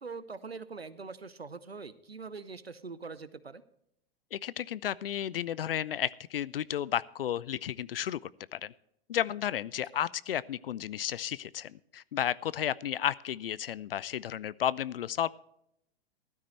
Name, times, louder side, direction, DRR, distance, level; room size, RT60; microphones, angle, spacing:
voice 1, 0.0-3.6 9.9-10.0, right 4 dB, 85° right, 16 dB, 0.8 m, -43 dB
voice 2, 4.3-8.2 8.5-8.7 9.1-15.4, left 10 dB, 70° left, 21 dB, 0.5 m, -33 dB
15.0 x 12.5 x 3.1 m, 0.77 s
figure-of-eight pair, 95°, 30 cm